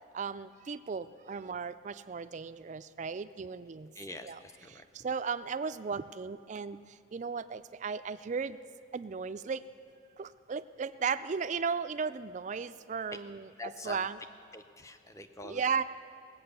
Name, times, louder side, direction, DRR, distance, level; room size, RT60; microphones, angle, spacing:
voice 1, 0.1-3.9 4.2-4.4 5.0-6.8 7.1-8.6 8.9-9.6 10.2-13.5 13.9-14.2 15.4-15.8, right 5 dB, 35° right, 12 dB, 0.3 m, -35 dB
voice 2, 3.9-4.8 13.6-14.1 14.5-15.6, left 2 dB, 15° left, 8 dB, 0.6 m, -45 dB
18.0 x 8.5 x 6.8 m, 2.4 s
head